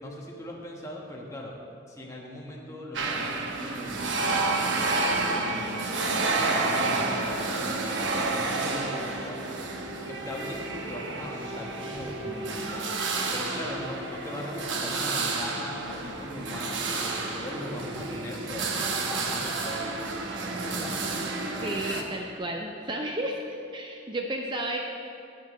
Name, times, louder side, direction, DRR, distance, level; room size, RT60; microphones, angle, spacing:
voice 1, 0.0-1.6 1.9-6.0 6.4-7.3 7.6-9.4 10.1-12.9 13.3-18.7 19.0-21.1, left 1 dB, 15° left, -2 dB, 1.2 m, -40 dB
sound 1, 2.9-22.0, right 3 dB, 70° right, 0.9 m, -30 dB
voice 2, 21.6-24.8, right 1 dB, 25° right, 1 dB, 0.5 m, -32 dB
18.0 x 7.4 x 3.1 m, 2.6 s
head